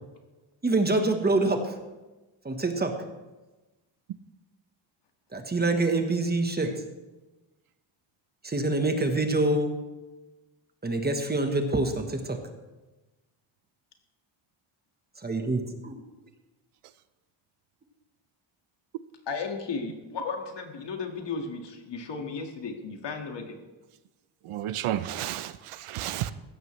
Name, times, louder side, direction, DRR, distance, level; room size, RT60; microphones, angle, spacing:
voice 1, 0.6-1.8 2.4-2.9 5.3-6.8 8.4-9.8 10.8-12.4 15.2-16.0, right 2 dB, 20° right, 5 dB, 1.2 m, -26 dB
voice 2, 19.3-23.6, left 4 dB, 55° left, 3 dB, 1.9 m, -34 dB
voice 3, 24.5-26.3, right 12 dB, 80° right, 13 dB, 0.8 m, -32 dB
16.0 x 13.0 x 3.2 m, 1.1 s
wide cardioid pair, 155°, 50 cm